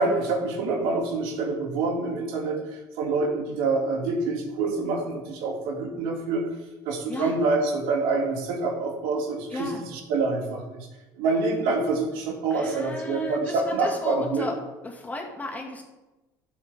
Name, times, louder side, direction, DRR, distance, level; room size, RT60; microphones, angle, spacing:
voice 1, 0.0-2.6 3.0-6.5 6.8-10.9 11.2-14.5, right 3 dB, 80° right, 2 dB, 1.9 m, -26 dB
voice 2, 9.5-9.9 12.5-14.6 14.8-15.8, left 2 dB, 20° left, 0 dB, 2.2 m, -34 dB
12.0 x 7.3 x 3.6 m, 1.1 s
supercardioid pair, 105°, 9 cm